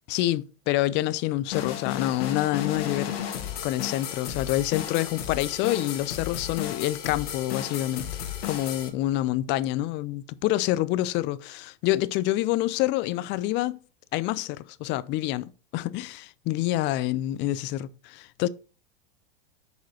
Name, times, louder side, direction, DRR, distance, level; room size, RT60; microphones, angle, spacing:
voice 1, 0.1-3.1 3.6-13.8 14.1-18.5, left 15 dB, 35° left, 0.4 m, -27 dB
sound 1, 1.5-8.9, left 9 dB, 65° left, 1.7 m, -33 dB
6.2 x 5.0 x 4.7 m
hypercardioid pair, 105°, 32 cm